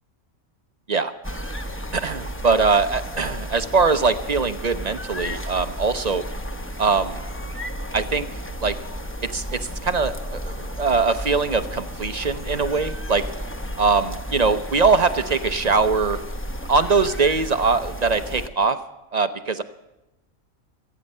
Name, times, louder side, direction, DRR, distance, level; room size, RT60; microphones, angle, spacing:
sound 1, 1.2-18.5, equal, 10° left, 0.7 m, -33 dB
voice 1, 1.9-6.3 6.8-7.2 7.9-8.7 9.3-13.2 13.8-16.2 16.7-18.8 19.1-19.6, right 4 dB, 45° right, 10 dB, 0.6 m, -22 dB
27.0 x 9.4 x 5.4 m, 0.97 s
omnidirectional pair, 1.5 m